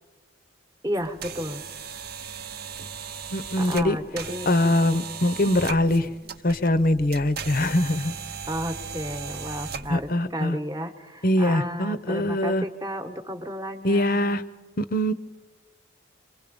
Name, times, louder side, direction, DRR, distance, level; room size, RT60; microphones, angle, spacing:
voice 1, 0.8-1.6 3.6-4.8 8.5-14.4, equal, 20° right, 8 dB, 1.2 m, -33 dB
sound 1, 0.9-10.1, right 6 dB, 50° right, 0.8 m, -37 dB
voice 2, 3.3-4.0 4.5-6.2 6.4-8.1 9.9-10.6 11.2-12.6 13.8-14.4 14.8-15.1, left 1 dB, 45° left, 13 dB, 0.8 m, -23 dB
27.0 x 22.5 x 5.3 m, 1.4 s
head